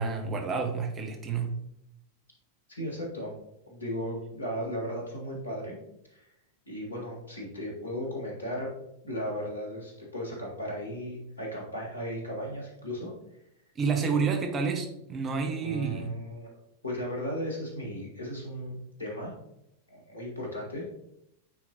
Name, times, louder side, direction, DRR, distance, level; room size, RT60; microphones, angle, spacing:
voice 1, 0.0-1.5 13.7-16.1, right 5 dB, 25° right, 4 dB, 1.1 m, -29 dB
voice 2, 2.8-3.3 3.7-5.8 6.1-6.3 6.7-8.7 9.0-13.1 14.0-14.2 15.4-16.5 16.8-19.3 19.9-20.9, equal, 80° left, -2 dB, 1.9 m, -36 dB
8.7 x 4.4 x 2.9 m, 0.82 s
figure-of-eight pair, 90°, 0 cm